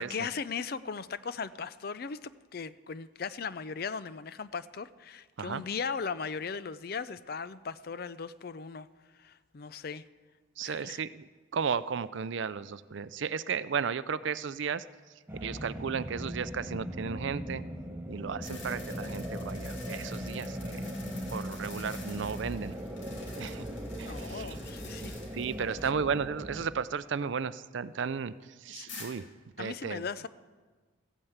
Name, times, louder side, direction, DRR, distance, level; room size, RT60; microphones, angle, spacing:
voice 1, 0.0-8.9 9.2-10.0 10.6-11.0 24.0-25.1 25.5-25.7 28.7-28.9 29.6-30.3, left 5 dB, 50° left, 15 dB, 0.4 m, -38 dB
voice 2, 10.6-14.8 15.4-17.6 18.1-22.8 23.4-23.7 24.0-24.6 25.3-28.3 28.6-29.3 29.6-30.0, right 6 dB, 65° right, 15 dB, 0.4 m, -34 dB
sound 1, 15.3-26.7, equal, 10° right, 0.9 m, -39 dB
sound 2, 18.4-25.9 26.2-26.3 28.9-29.1, left 3 dB, 65° left, 2.9 m, -49 dB
15.0 x 8.9 x 8.0 m, 1.4 s
head